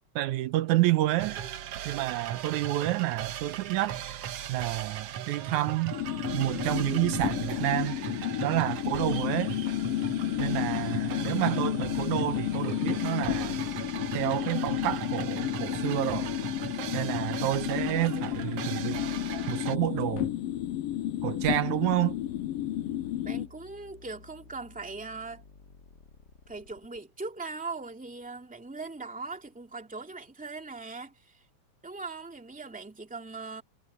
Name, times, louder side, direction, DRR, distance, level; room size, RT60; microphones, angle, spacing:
voice 1, 0.2-1.4 1.9-4.0 4.5-6.0 6.3-8.0 8.4-9.6 10.4-13.6 14.1-16.3 16.9-19.0 19.5-20.3 21.2-22.2, right 15 dB, 80° right, 2.2 m, -29 dB
sound 1, 1.2-19.8, right 9 dB, 65° right, 1.9 m, -39 dB
sound 2, 5.9-23.5, left 12 dB, 80° left, 1.4 m, -31 dB
sound 3, 18.2-27.0, left 3 dB, 35° left, 2.6 m, -55 dB
voice 2, 23.2-25.4 26.5-31.4 31.8-33.6, right 3 dB, 5° right, 2.0 m, -40 dB
omnidirectional pair, 3.4 m